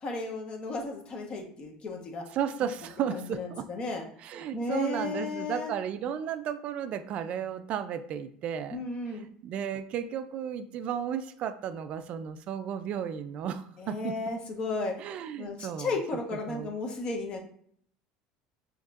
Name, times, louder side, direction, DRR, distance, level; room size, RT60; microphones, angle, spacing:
voice 1, 0.0-2.2 3.1-4.0 4.5-5.7 8.7-9.3 13.8-14.9 15.4-17.4, left 3 dB, 35° left, 1 dB, 1.1 m, -34 dB
voice 2, 2.3-3.7 4.2-14.2 15.0-16.0 16.3-16.8, right 8 dB, 50° right, 10 dB, 0.4 m, -34 dB
6.3 x 2.9 x 2.5 m, 0.63 s
supercardioid pair, 120°, 3 cm